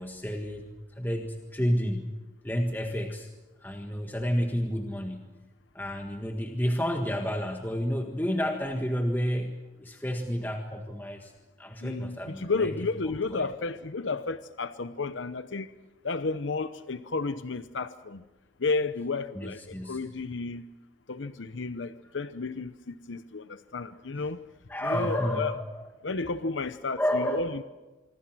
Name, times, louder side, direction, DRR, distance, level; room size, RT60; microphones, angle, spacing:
voice 1, 0.0-2.1 2.4-3.3 3.6-5.3 5.7-11.3 11.6-12.7 13.3-13.5 19.3-20.0 24.1-24.3 24.7-25.9 26.9-27.5, equal, 10° left, 3 dB, 1.6 m, -30 dB
voice 2, 11.8-15.7 16.0-18.2 18.6-20.6 21.1-24.4 24.8-25.6 26.0-27.6, left 3 dB, 85° left, 12 dB, 0.9 m, -32 dB
26.5 x 24.0 x 6.2 m, 1.1 s
head